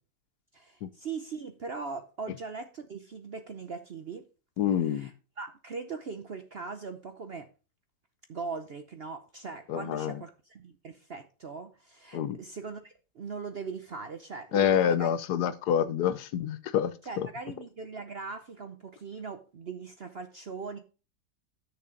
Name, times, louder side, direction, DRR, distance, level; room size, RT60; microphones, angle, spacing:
voice 1, 0.5-4.2 4.7-7.5 8.3-15.1 17.0-20.8, right 4 dB, 50° right, 0.7 m, -40 dB
voice 2, 4.6-5.1 9.7-10.2 12.1-12.4 14.5-16.9 17.2-17.3, left 9 dB, 70° left, 1.2 m, -27 dB
9.0 x 6.7 x 5.1 m
omnidirectional pair, 1.9 m